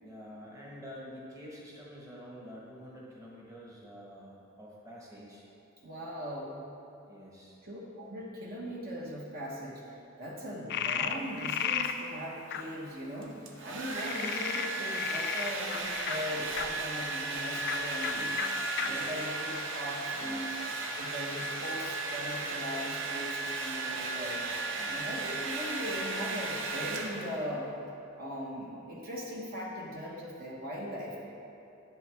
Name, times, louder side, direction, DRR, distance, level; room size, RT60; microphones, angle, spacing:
voice 1, 0.0-5.4 7.1-7.6 18.8-19.3 20.1-20.5 24.8-25.1, equal, 15° right, -4 dB, 1.2 m, -48 dB
voice 2, 5.8-6.7 7.6-20.6 20.9-24.4 24.9-27.7 28.2-31.2, equal, 45° right, -3 dB, 1.1 m, -39 dB
Frog, 10.7-11.9 12.5-12.6 13.9-16.7 17.6-17.8 18.0-18.1 18.4-18.5 18.8-18.9 19.5-20.2, left 9 dB, 50° left, 0.4 m, -34 dB
Domestic sounds home sounds, 13.2-27.5, right 2 dB, 60° right, 0.8 m, -35 dB
11.0 x 7.5 x 3.4 m, 2.9 s
head